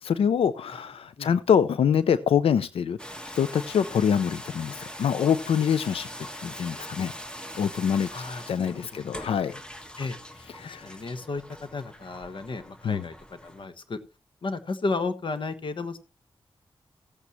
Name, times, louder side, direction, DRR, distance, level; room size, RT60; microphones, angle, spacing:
voice 1, 0.0-3.0 3.4-7.1 7.5-8.1 8.5-9.5 10.6-10.9 12.8-13.1, left 8 dB, 90° left, 14 dB, 0.5 m, -25 dB
sound 1, 3.0-13.7, equal, 10° left, 1.6 m, -42 dB
voice 2, 8.1-9.0 10.0-10.2 10.6-14.0 14.4-16.0, left 3 dB, 60° left, 10 dB, 1.3 m, -33 dB
15.5 x 8.4 x 3.1 m, 0.30 s
cardioid pair, 60°, 9 cm